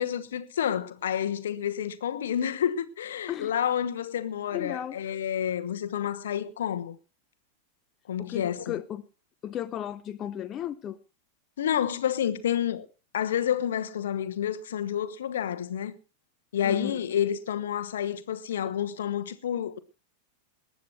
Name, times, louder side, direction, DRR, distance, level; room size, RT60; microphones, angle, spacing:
voice 1, 0.0-7.0 8.1-8.8 11.6-12.9 13.1-16.0 16.5-19.8, left 9 dB, 60° left, 1.1 m, -29 dB
voice 2, 4.5-5.0 8.2-9.0 9.4-11.0 16.6-17.0, left 10 dB, 30° left, 0.7 m, -35 dB
19.5 x 9.7 x 4.5 m
figure-of-eight pair, 90°, 0 cm